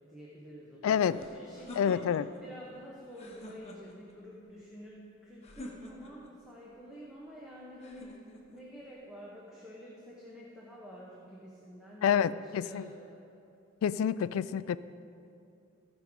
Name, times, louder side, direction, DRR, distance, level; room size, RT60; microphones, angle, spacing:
voice 1, 0.0-2.0 2.4-8.2 8.5-13.2, equal, 5° right, -6 dB, 1.1 m, -49 dB
voice 2, 0.8-1.2 1.7-2.3 12.0-12.9 13.8-14.8, left 8 dB, 90° left, 16 dB, 0.3 m, -28 dB
sound 1, 1.1-2.4 3.1-4.1 5.4-6.3 7.8-8.7, left 1 dB, 30° left, 1.1 m, -48 dB
15.5 x 5.3 x 5.2 m, 2.6 s
head